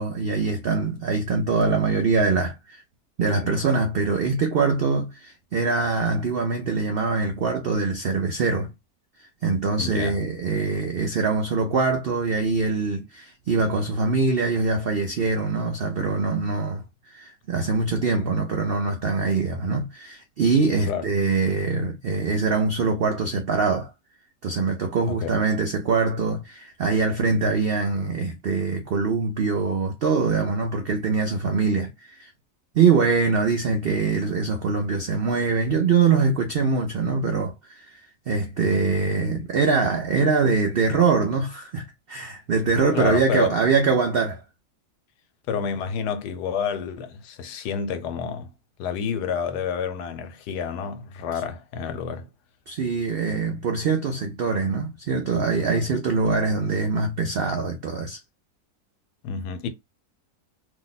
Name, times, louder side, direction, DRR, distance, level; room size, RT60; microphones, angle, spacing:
voice 1, 0.0-2.8 3.2-8.7 9.4-16.8 17.1-23.9 24.4-32.3 32.7-38.0 38.3-44.4 52.7-58.2, right 4 dB, 80° right, 0.5 m, -23 dB
voice 2, 9.8-10.2 20.9-21.1 25.1-25.4 42.9-43.6 45.5-48.5 48.8-52.3 59.2-59.7, left 7 dB, 80° left, 1.2 m, -29 dB
2.8 x 2.1 x 3.9 m
omnidirectional pair, 1.7 m